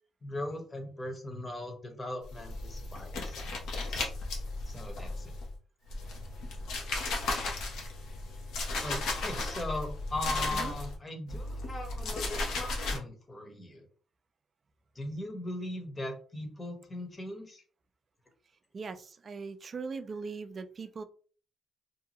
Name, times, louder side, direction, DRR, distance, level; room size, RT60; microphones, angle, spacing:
voice 1, 0.2-3.5 3.9-4.1 4.6-5.3 8.8-13.9 14.9-17.6, left 1 dB, 25° left, 0.9 m, -39 dB
sound 1, 2.2-5.5 5.9-11.0 11.3-13.0, left 2 dB, 85° left, 0.8 m, -35 dB
voice 2, 18.7-21.0, right 4 dB, 40° right, 0.4 m, -40 dB
2.7 x 2.3 x 2.8 m
cardioid pair, 90°, 0 cm